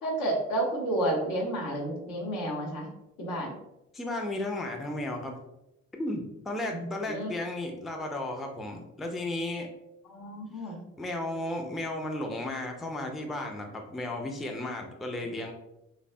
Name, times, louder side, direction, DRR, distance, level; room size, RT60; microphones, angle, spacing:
voice 1, 0.0-2.9 3.2-3.5 6.7-7.3 10.1-10.8, right 1 dB, 75° left, -3 dB, 0.9 m, -31 dB
voice 2, 3.9-5.4 6.0-9.7 11.0-15.5, left 1 dB, ahead, 2 dB, 0.3 m, -34 dB
3.2 x 2.0 x 2.6 m, 0.90 s
hypercardioid pair, 45°, 37 cm